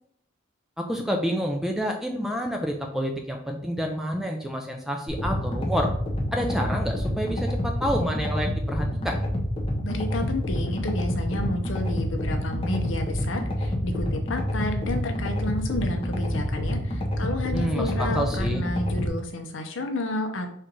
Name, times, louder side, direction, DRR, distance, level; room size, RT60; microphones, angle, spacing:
voice 1, 0.8-5.9 6.3-9.2 17.5-18.6, equal, ahead, 3 dB, 0.4 m, -28 dB
sound 1, 5.1-19.1, equal, 25° left, 0.8 m, -28 dB
voice 2, 9.8-20.5, left 2 dB, 65° left, 5 dB, 0.7 m, -31 dB
4.3 x 2.5 x 4.6 m, 0.66 s
head